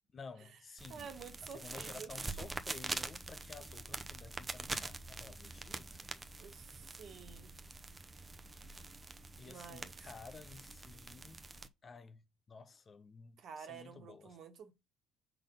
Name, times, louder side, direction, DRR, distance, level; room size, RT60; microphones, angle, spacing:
voice 1, 0.1-1.1 1.4-6.1 9.4-11.4 11.8-14.4, left 4 dB, 40° left, 0.7 m, -53 dB
sound 1, 0.8-11.7, right 3 dB, 25° right, 0.8 m, -45 dB
voice 2, 0.9-2.1 6.4-7.5 9.4-9.9 13.4-14.7, right 6 dB, 60° right, 1.4 m, -50 dB
5.6 x 3.9 x 5.3 m
supercardioid pair, 65°, 0 cm